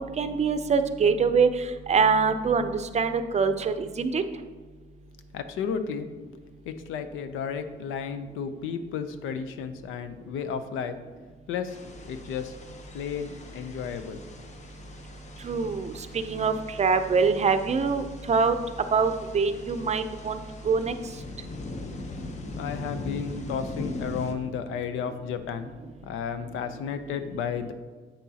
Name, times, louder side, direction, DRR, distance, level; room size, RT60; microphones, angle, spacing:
voice 1, 0.2-1.5 1.9-4.2 15.4-18.6 18.9-20.4 20.6-20.9, right 5 dB, 35° right, 10 dB, 0.5 m, -24 dB
voice 2, 5.3-6.1 6.7-11.0 11.5-11.8 12.0-12.5 12.9-14.2 22.6-25.7 26.0-27.7, left 7 dB, 85° left, 10 dB, 0.6 m, -33 dB
sound 1, 11.7-24.3, left 2 dB, 35° left, 0.8 m, -40 dB
8.0 x 6.1 x 2.8 m, 1.4 s
cardioid pair, 90°, 20 cm